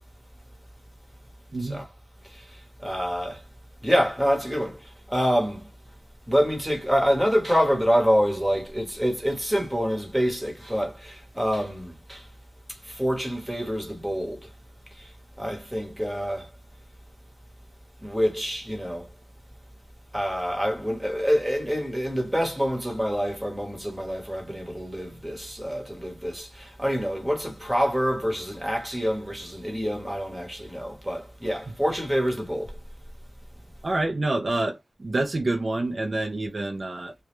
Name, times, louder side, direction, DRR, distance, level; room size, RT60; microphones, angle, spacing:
voice 1, 1.5-1.8 31.7-31.8 33.8-37.1, right 2 dB, 35° right, 0.3 m, -27 dB
voice 2, 2.8-3.4 3.8-4.8 5.1-5.7 6.3-12.2 12.9-14.4 15.4-16.5 18.0-19.0 20.1-32.7, equal, 5° right, 0.9 m, -26 dB
2.1 x 2.1 x 2.9 m
wide cardioid pair, 150°, 0 cm